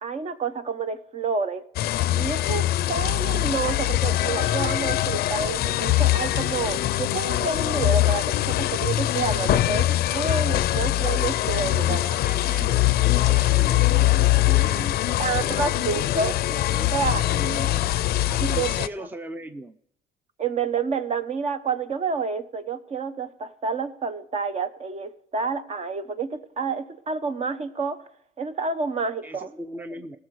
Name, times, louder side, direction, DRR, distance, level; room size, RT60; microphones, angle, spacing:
voice 1, 0.0-1.6 2.1-12.0 15.2-16.3 16.9-17.2 18.4-19.1 20.4-28.0 28.4-29.5, right 4 dB, 40° right, 10 dB, 1.0 m, -29 dB
sound 1, 1.8-18.9, left 15 dB, 65° left, 0.5 m, -23 dB
voice 2, 11.8-15.7 15.9-17.9 18.3-19.8 29.2-30.2, right 1 dB, 10° right, 9 dB, 0.6 m, -38 dB
18.0 x 6.8 x 4.8 m, 0.71 s
cardioid pair, 110°, 17 cm